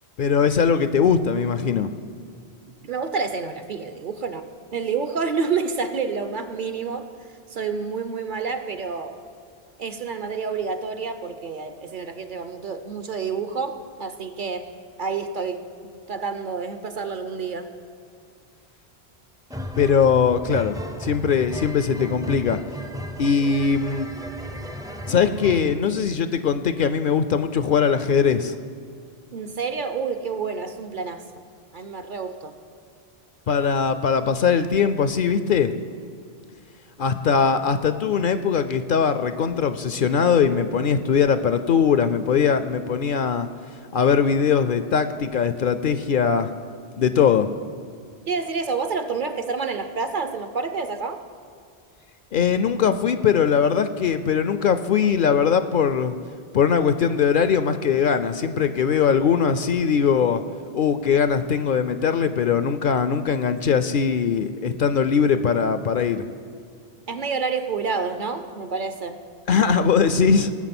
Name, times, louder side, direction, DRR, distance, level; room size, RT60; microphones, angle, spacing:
voice 1, 0.2-1.9 19.8-22.6 23.2-24.1 25.1-28.6 33.5-35.7 37.0-43.5 43.9-46.5 47.0-47.5 52.3-56.1 56.5-60.4 60.7-66.2 69.5-70.5, left 6 dB, 60° left, 11 dB, 0.7 m, -21 dB
voice 2, 2.8-7.1 7.5-9.2 9.8-14.7 15.0-17.7 29.3-31.2 31.7-32.5 48.3-51.2 67.1-69.2, right 5 dB, 55° right, 9 dB, 0.9 m, -29 dB
sound 1, 19.5-25.8, equal, 5° right, 0.4 m, -35 dB
19.0 x 7.4 x 6.0 m, 2.3 s
omnidirectional pair, 1.1 m